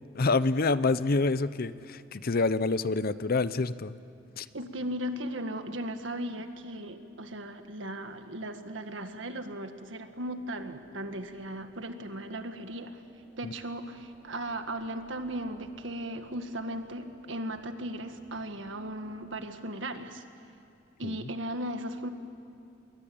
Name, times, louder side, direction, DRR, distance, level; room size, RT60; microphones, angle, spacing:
voice 1, 0.1-4.0 4.4-4.5 13.4-13.5 21.0-21.2, left 3 dB, 50° left, 15 dB, 0.7 m, -27 dB
voice 2, 4.5-13.0 13.4-20.2 21.0-22.1, right 1 dB, 70° right, 7 dB, 1.8 m, -37 dB
sound 1, 10.2-19.5, equal, 5° right, 4.1 m, -59 dB
28.5 x 22.0 x 8.7 m, 2.6 s
head